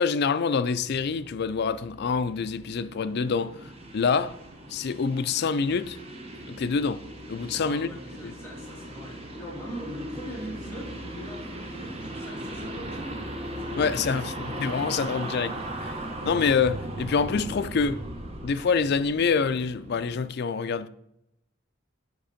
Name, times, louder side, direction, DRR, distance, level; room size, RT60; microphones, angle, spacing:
voice 1, 0.0-3.6 3.9-4.4 4.7-6.0 6.5-7.0 7.3-8.0 8.2-8.3 13.8-14.3 14.6-15.6 15.8-15.9 16.2-18.0 18.4-20.9, left 5 dB, 55° left, 0.4 m, -26 dB
sound 1, 0.7-20.3, right 1 dB, 30° right, 1.1 m, -38 dB
voice 2, 7.4-13.2 13.6-14.2, right 1 dB, 10° left, 2.3 m, -41 dB
8.1 x 5.0 x 5.0 m
head